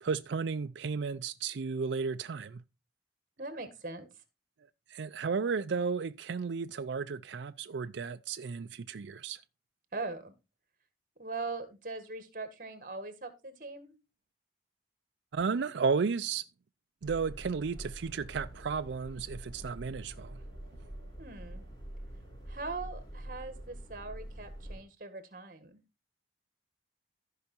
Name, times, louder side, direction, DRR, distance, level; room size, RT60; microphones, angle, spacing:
voice 1, 0.0-2.6 4.9-9.4 15.3-16.5 17.0-20.4, right 5 dB, 90° right, 0.5 m, -33 dB
voice 2, 3.4-4.1 9.9-10.3 11.2-14.0 21.2-21.6 22.5-25.8, right 3 dB, 50° right, 1.8 m, -41 dB
sound 1, 17.0-24.8, right 1 dB, 25° left, 5.0 m, -45 dB
14.0 x 5.7 x 4.4 m
head